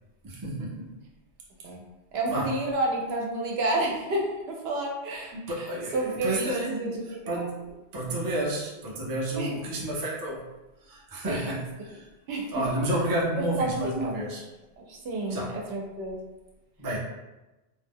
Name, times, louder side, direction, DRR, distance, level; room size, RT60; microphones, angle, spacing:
voice 1, 0.2-0.9 2.3-2.5 5.3-6.8 7.0-10.5 10.8-12.1 12.5-14.4 15.3-15.6 16.8-17.0, right 1 dB, 30° right, -4 dB, 0.4 m, -31 dB
voice 2, 2.1-4.2 4.5-5.3 5.9-7.4 9.4-9.5 11.2-11.5 12.3-12.5 13.3-13.7 14.0-14.2 14.9-16.2, right 2 dB, 70° right, -1 dB, 0.8 m, -30 dB
2.6 x 2.0 x 3.4 m, 1.0 s
omnidirectional pair, 1.1 m